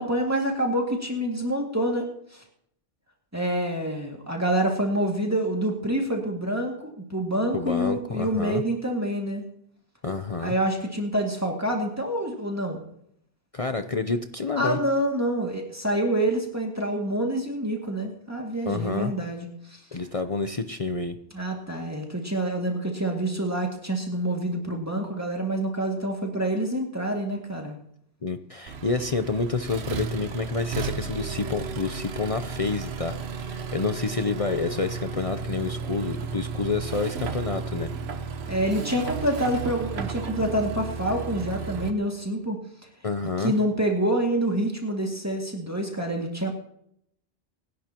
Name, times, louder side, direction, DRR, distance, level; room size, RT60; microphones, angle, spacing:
voice 1, 0.0-2.4 3.3-9.4 10.4-12.8 14.6-19.8 21.3-27.7 38.5-42.6 43.4-46.5, right 1 dB, 15° right, 0 dB, 2.2 m, -27 dB
voice 2, 7.5-8.6 10.0-10.5 13.5-14.8 18.7-19.1 19.9-21.2 28.2-37.9 43.0-43.5, left 4 dB, 40° left, 8 dB, 0.7 m, -28 dB
Accelerating revving vroom, 28.7-41.9, right 6 dB, 80° right, 1.1 m, -34 dB
25.5 x 11.5 x 2.9 m, 0.71 s
omnidirectional pair, 1.0 m